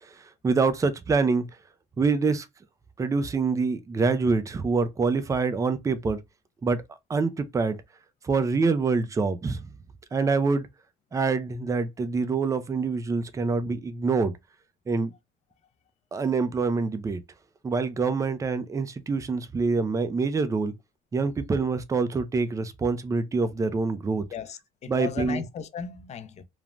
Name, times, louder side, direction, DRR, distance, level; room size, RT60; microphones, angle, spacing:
voice 1, 0.0-1.5 2.0-2.5 3.0-6.2 6.6-6.8 7.1-7.8 8.2-9.7 10.1-10.7 11.1-14.3 14.9-15.1 16.1-17.2 17.6-20.7 21.1-24.2 24.9-25.4, right 4 dB, 20° right, 0.4 m, -25 dB
voice 2, 24.3-26.4, left 7 dB, 40° left, 0.5 m, -36 dB
3.1 x 2.1 x 2.4 m
cardioid pair, 110°, 17 cm